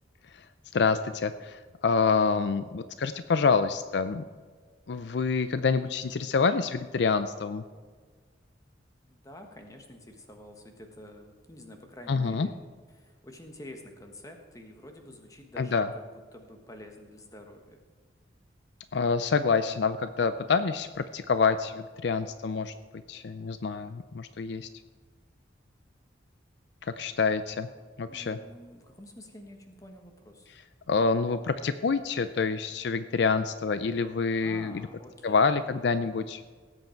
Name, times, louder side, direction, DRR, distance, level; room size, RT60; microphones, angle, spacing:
voice 1, 0.7-4.2 4.9-7.6 12.1-12.5 15.6-15.9 18.9-22.7 23.1-24.7 26.8-27.7 28.0-28.4 30.9-34.8 35.2-36.4, left 5 dB, 60° left, 11 dB, 0.4 m, -27 dB
voice 2, 9.1-12.5 12.9-16.0 16.3-17.8 28.1-30.5 34.4-35.7, left 1 dB, 20° left, 4 dB, 1.3 m, -48 dB
18.5 x 8.1 x 4.5 m, 1.5 s
head